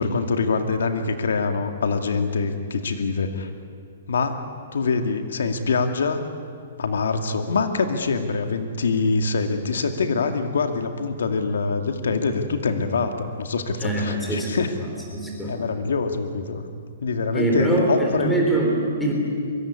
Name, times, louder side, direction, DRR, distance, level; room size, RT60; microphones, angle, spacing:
voice 1, 0.0-3.5 4.1-4.4 4.7-6.2 6.8-14.7 15.5-16.7 17.0-18.4, left 4 dB, 80° left, 7 dB, 2.2 m, -24 dB
voice 2, 13.8-14.5 14.8-15.5 17.3-17.9 18.2-19.1, right 2 dB, 5° left, -2 dB, 3.6 m, -23 dB
23.5 x 23.0 x 9.8 m, 2.3 s
hypercardioid pair, 180°, 0 cm